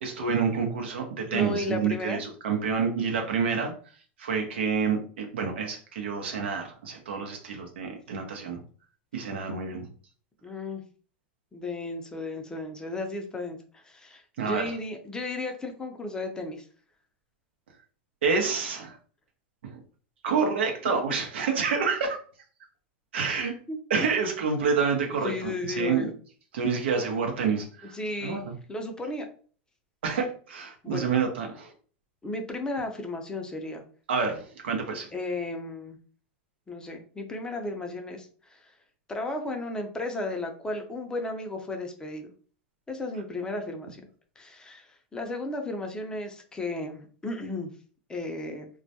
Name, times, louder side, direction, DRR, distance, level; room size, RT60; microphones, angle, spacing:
voice 1, 0.0-3.7 4.2-8.6 9.1-9.9 14.4-14.7 18.2-18.9 20.2-22.2 23.1-23.5 23.9-26.1 26.5-27.9 28.2-28.5 30.0-31.7 34.1-35.1, right 5 dB, 80° right, 3 dB, 0.7 m, -28 dB
voice 2, 1.3-2.2 10.4-10.8 11.5-16.7 23.7-23.8 25.2-26.1 27.8-28.4 28.7-29.3 30.8-31.1 32.2-33.8 35.1-36.0 36.7-38.6 39.1-42.3 42.9-44.0 44.4-47.7 48.1-48.7, left 2 dB, 15° left, 4 dB, 0.5 m, -34 dB
2.2 x 2.1 x 2.7 m, 0.43 s
hypercardioid pair, 110°, 6 cm